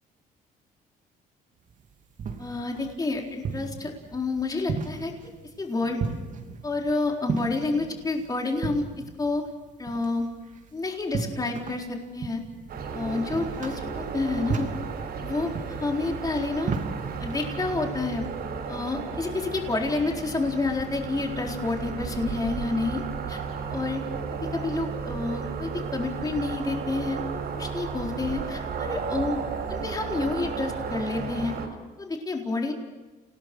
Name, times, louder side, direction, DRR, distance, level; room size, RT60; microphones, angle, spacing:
sound 1, 1.7-17.6, right 5 dB, 50° right, 3.0 m, -36 dB
voice 1, 2.4-5.1 5.6-6.0 6.6-8.8 9.2-9.4 9.8-10.3 10.7-12.4 12.9-14.7 15.2-16.7 17.2-18.2 18.7-23.0 23.3-23.4 23.7-24.0 24.5-27.2 27.6-29.4 29.7-31.5 32.0-32.7, left 3 dB, 20° left, 1 dB, 4.2 m, -29 dB
sound 2, 12.7-31.7, right 5 dB, 65° right, 6.0 m, -34 dB
29.0 x 18.5 x 6.3 m, 1.2 s
cardioid pair, 110°, 17 cm